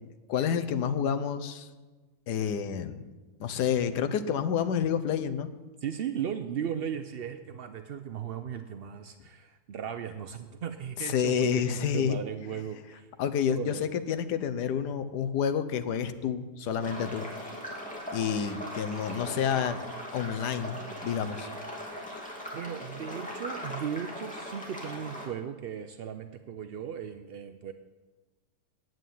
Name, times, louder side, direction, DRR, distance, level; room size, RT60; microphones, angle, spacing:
voice 1, 0.3-1.7 2.3-3.0 3.4-5.5 11.0-12.2 13.2-17.3 18.1-19.8 20.1-21.5, left 8 dB, 85° left, 11 dB, 1.4 m, -29 dB
voice 2, 5.8-13.1 13.5-13.9 19.2-19.9 22.5-27.7, right 8 dB, 70° right, 9 dB, 0.5 m, -37 dB
sound 1, 16.8-25.3, equal, 5° left, 2.6 m, -39 dB
9.3 x 9.1 x 9.2 m, 1.3 s
omnidirectional pair, 1.7 m